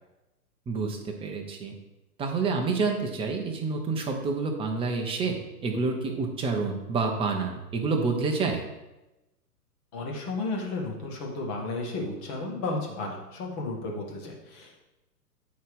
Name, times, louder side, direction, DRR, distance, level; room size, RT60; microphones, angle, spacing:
voice 1, 0.7-1.7 2.2-8.6, right 4 dB, 10° right, 2 dB, 0.9 m, -28 dB
voice 2, 9.9-14.8, left 2 dB, 10° left, 0 dB, 0.4 m, -33 dB
8.1 x 4.7 x 4.9 m, 0.99 s
hypercardioid pair, 120°, 48 cm